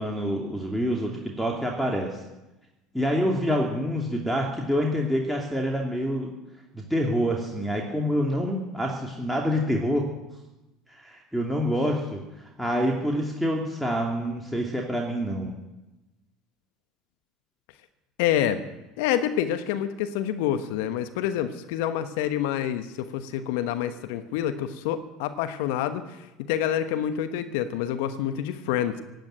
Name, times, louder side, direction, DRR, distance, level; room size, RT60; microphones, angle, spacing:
voice 1, 0.0-2.2 2.9-6.3 6.7-10.1 10.9-12.2 12.6-15.5, equal, ahead, -2 dB, 2.7 m, -27 dB
voice 2, 18.2-18.6 19.0-26.2 26.5-29.0, left 10 dB, 70° left, 10 dB, 1.1 m, -27 dB
17.0 x 9.2 x 9.1 m, 1.0 s
hypercardioid pair, 70°, 0 cm